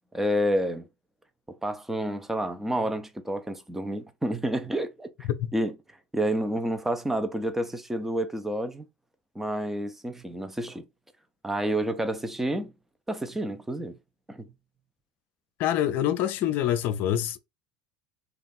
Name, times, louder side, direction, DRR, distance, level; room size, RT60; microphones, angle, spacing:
voice 1, 0.1-0.9 1.5-5.7 6.1-8.9 9.3-10.8 11.4-12.7 13.1-14.0 14.3-14.5, right 1 dB, 10° right, 0.6 m, -29 dB
voice 2, 15.6-17.4, left 11 dB, 55° left, 0.4 m, -25 dB
2.5 x 2.4 x 3.9 m
hypercardioid pair, 75°, 4 cm